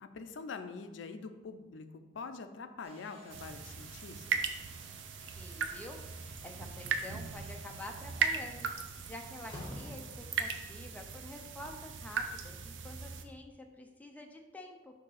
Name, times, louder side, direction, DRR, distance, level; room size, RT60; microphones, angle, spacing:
voice 1, 0.0-4.4, left 4 dB, 75° left, 9 dB, 0.4 m, -45 dB
sound 1, 2.8-8.3, right 1 dB, 30° right, 1.0 m, -58 dB
sound 2, 3.3-13.2, right 6 dB, 80° right, 0.5 m, -38 dB
voice 2, 5.4-8.7 9.1-15.0, left 1 dB, 10° left, 2 dB, 0.5 m, -48 dB
Slam, 8.3-8.4 8.8-10.6, left 1 dB, 25° left, 1.1 m, -47 dB
6.3 x 2.7 x 5.6 m, 1.1 s
head